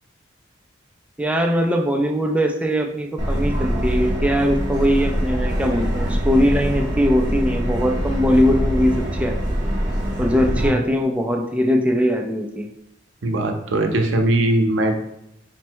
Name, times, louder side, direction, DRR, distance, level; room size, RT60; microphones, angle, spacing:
voice 1, 1.2-9.3 10.2-12.7, equal, 5° right, 1 dB, 0.4 m, -20 dB
Subway metro underground, 3.2-10.7, equal, 25° right, 0.9 m, -23 dB
voice 2, 13.2-15.0, right 1 dB, 80° right, 4 dB, 0.6 m, -20 dB
4.2 x 2.1 x 4.5 m, 0.79 s
head